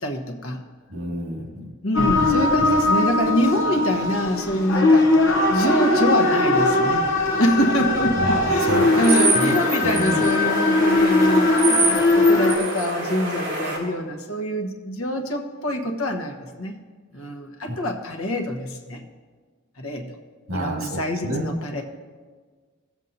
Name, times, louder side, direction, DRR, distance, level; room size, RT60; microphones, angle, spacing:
voice 1, 0.0-0.6 1.8-5.1 5.5-7.1 7.4-16.7 17.1-19.0 19.8-20.1 20.5-21.8, equal, 85° left, 3 dB, 1.2 m, -25 dB
voice 2, 0.9-1.7 7.3-7.4 8.2-9.0 9.3-9.6 9.8-10.3 17.2-17.3 17.7-17.8 20.5-21.8, equal, 85° right, 0 dB, 2.0 m, -29 dB
sound 1, 1.9-12.6, left 2 dB, 60° left, 1.0 m, -20 dB
sound 2, 8.7-13.8, right 2 dB, 55° right, 3.1 m, -26 dB
17.5 x 7.2 x 2.7 m, 1.5 s
head